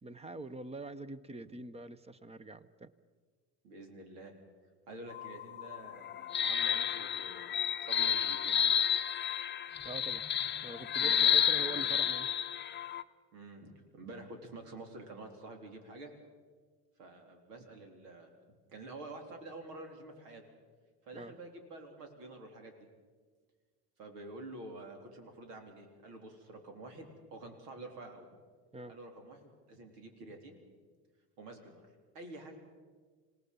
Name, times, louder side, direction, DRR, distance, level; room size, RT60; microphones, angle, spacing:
voice 1, 0.0-2.9 9.8-10.2 10.6-12.3 21.1-21.3 28.7-29.0, right 2 dB, 15° right, 16 dB, 0.7 m, -45 dB
voice 2, 3.6-4.3 4.9-8.6 11.0-11.9 13.3-16.1 17.0-20.4 21.0-22.9 24.0-28.3 28.9-30.6 31.4-32.6, right 2 dB, 80° right, 4 dB, 3.8 m, -49 dB
sound 1, 5.1-13.0, left 9 dB, 25° left, 0.7 m, -31 dB
27.0 x 18.0 x 5.4 m, 1.5 s
hypercardioid pair, 90°, 47 cm